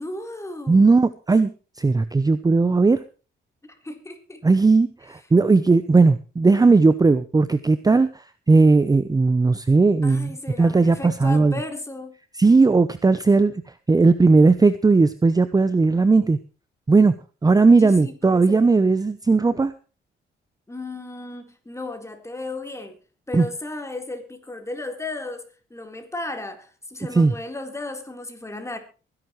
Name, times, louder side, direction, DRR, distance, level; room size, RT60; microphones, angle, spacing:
voice 1, 0.0-0.9 3.6-4.4 10.0-12.1 17.8-18.7 20.7-23.0 23.3-25.4 25.7-28.8, left 2 dB, 15° left, 4.0 m, -34 dB
voice 2, 0.7-1.5 1.8-3.0 4.4-10.3 10.6-11.5 12.4-13.5 13.9-16.4 16.9-17.1 17.4-19.7 23.3-23.5 27.1-27.3, right 3 dB, 20° right, 0.8 m, -17 dB
23.5 x 11.0 x 3.2 m
cardioid pair, 90°, 20 cm